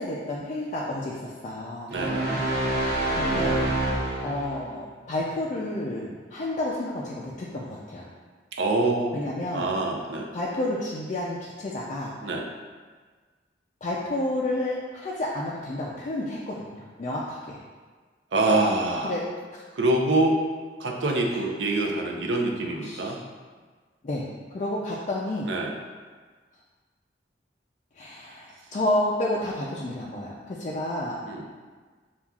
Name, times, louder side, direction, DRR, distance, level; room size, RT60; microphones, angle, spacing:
voice 1, 0.0-1.9 3.1-3.6 4.2-8.1 9.1-9.7 10.3-12.1 13.8-17.6 19.0-19.2 19.5-19.6 21.3-21.4 22.8-23.2 24.0-24.2 24.5-25.5 27.9-31.2, left 1 dB, 40° left, -5 dB, 0.4 m, -30 dB
sound 1, 1.9-4.7, right 1 dB, 65° right, 0.9 m, -26 dB
voice 2, 1.9-2.4 8.5-10.3 12.2-12.5 18.3-19.2 19.7-20.4 20.8-23.2 25.5-25.7 31.3-31.4, right 2 dB, 90° right, 1 dB, 0.6 m, -25 dB
6.9 x 2.4 x 2.3 m, 1.5 s
head